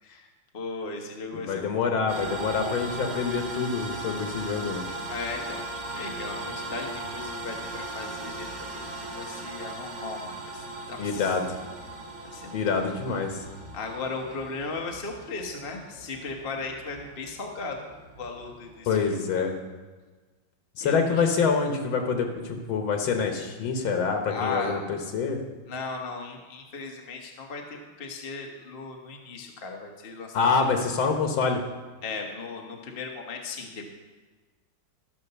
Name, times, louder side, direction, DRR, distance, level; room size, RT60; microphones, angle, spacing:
voice 1, 0.5-1.7 2.0-2.1 5.0-5.7 5.9-11.3 12.2-13.0 13.7-19.5 20.8-21.3 24.3-24.8 25.7-30.5 32.0-33.9, left 4 dB, 35° left, 1 dB, 1.1 m, -37 dB
voice 2, 1.3-4.9 11.0-11.4 12.5-13.4 18.9-19.5 20.8-25.4 30.3-31.6, left 5 dB, 80° left, 3 dB, 2.0 m, -26 dB
sound 1, 2.1-19.2, right 2 dB, 50° right, 1.7 m, -38 dB
13.5 x 5.3 x 6.8 m, 1.3 s
omnidirectional pair, 2.2 m